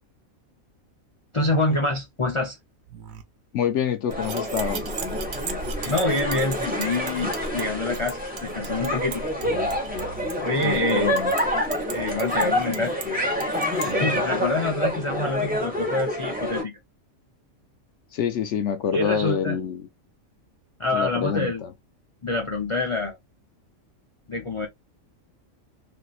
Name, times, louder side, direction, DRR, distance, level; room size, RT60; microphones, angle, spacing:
voice 1, 1.3-2.6 5.8-9.2 10.4-11.2 11.9-13.0 13.9-16.8 18.9-19.6 20.8-21.6 22.2-23.2 24.3-24.7, left 2 dB, 40° left, 0.5 m, -26 dB
sound 1, 2.8-3.2 5.0-6.0 7.2-7.6 9.4-10.3, right 9 dB, 90° right, 1.1 m, -42 dB
voice 2, 3.5-4.9 10.6-11.3 18.1-19.8 20.9-21.7, left 8 dB, 65° left, 0.8 m, -27 dB
sound 2, 4.1-16.6, left 1 dB, 10° right, 0.8 m, -27 dB
sound 3, 4.1-13.9, right 7 dB, 60° right, 0.5 m, -38 dB
3.3 x 2.8 x 2.4 m
omnidirectional pair, 1.4 m